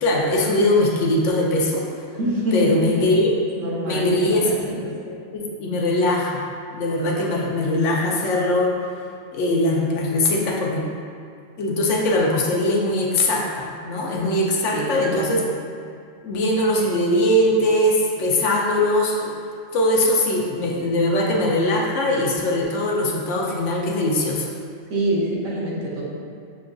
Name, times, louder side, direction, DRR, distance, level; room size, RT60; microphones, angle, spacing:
voice 1, 0.0-1.9 2.5-3.3 3.9-4.8 5.3-6.5 6.7-8.7 9.3-10.9 11.6-15.4 16.2-19.3 19.7-24.5, left 1 dB, 80° left, -2 dB, 1.0 m, -21 dB
voice 2, 2.2-2.8 3.6-4.4 4.6-4.8 14.7-14.9 15.1-15.4 24.9-26.0, right 1 dB, 85° right, -5 dB, 1.3 m, -25 dB
6.6 x 2.3 x 2.5 m, 2.4 s
omnidirectional pair, 1.3 m